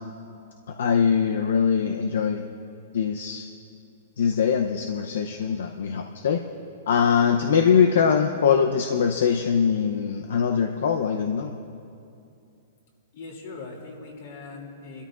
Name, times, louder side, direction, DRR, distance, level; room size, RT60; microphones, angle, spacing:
voice 1, 0.7-2.5 2.9-3.5 4.2-6.4 6.9-11.6, left 7 dB, 75° left, 5 dB, 0.6 m, -22 dB
voice 2, 13.1-15.0, left 3 dB, 55° left, 0 dB, 2.7 m, -40 dB
29.5 x 13.0 x 2.5 m, 2.6 s
hypercardioid pair, 165°, 0 cm